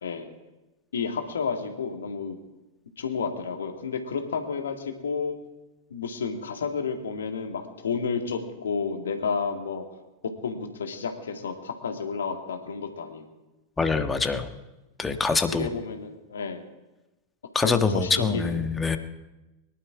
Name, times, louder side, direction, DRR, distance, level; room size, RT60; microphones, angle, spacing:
voice 1, 0.9-2.4 3.0-5.4 5.9-9.8 10.4-13.4 15.5-16.6 17.6-18.6, left 5 dB, 65° left, 4 dB, 2.2 m, -31 dB
voice 2, 13.8-14.5 15.0-15.7 17.5-19.0, left 4 dB, 10° left, 7 dB, 1.4 m, -24 dB
23.0 x 12.0 x 4.9 m, 1.0 s
figure-of-eight pair, 90°, 0 cm